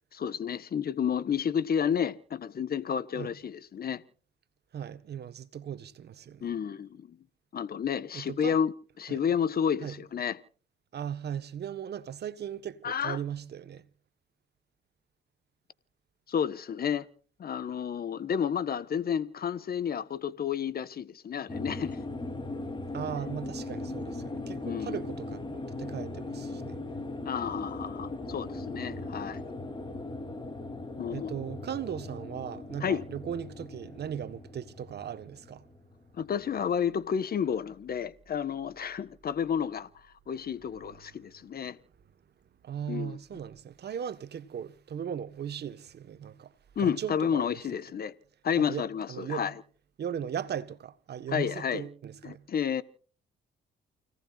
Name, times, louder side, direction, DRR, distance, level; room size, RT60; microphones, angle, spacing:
voice 1, 0.1-4.0 6.4-7.2 7.5-10.4 12.8-13.2 16.3-17.1 17.4-22.0 24.6-25.0 27.2-29.4 31.0-31.3 32.8-33.0 36.1-39.9 40.3-41.8 42.9-43.2 46.7-48.1 48.4-49.5 51.3-51.8 52.2-52.8, left 7 dB, 50° left, 1.4 m, -31 dB
voice 2, 4.7-6.5 8.1-8.6 9.1-9.2 9.8-10.0 10.9-13.9 22.9-26.8 31.1-35.7 40.7-40.8 41.2-41.3 42.6-47.6 48.6-49.5 50.0-52.5, right 8 dB, 55° right, 1.5 m, -38 dB
sound 1, 21.5-36.3, left 2 dB, 25° left, 3.3 m, -39 dB
29.5 x 18.0 x 2.6 m
cardioid pair, 90°, 20 cm